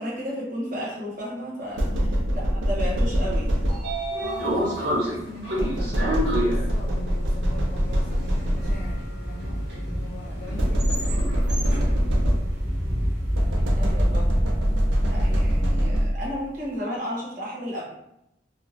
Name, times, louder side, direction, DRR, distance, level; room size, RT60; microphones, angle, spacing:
voice 1, 0.0-1.9 2.3-3.7 10.5-10.7 13.8-14.4 15.0-17.8, equal, 45° right, -6 dB, 1.1 m, -33 dB
sound 1, 1.8-4.2 5.6-9.1 10.6-12.8 13.3-16.4, equal, 90° right, 0.5 m, -24 dB
voice 2, 1.9-2.3 4.2-12.4, left 2 dB, 55° left, -3 dB, 0.4 m, -43 dB
Train / Sliding door, 3.3-13.4, equal, 70° right, 1.0 m, -31 dB
sound 2, 8.6-15.7, equal, 10° right, 1.3 m, -29 dB
2.4 x 2.3 x 3.2 m, 0.82 s
head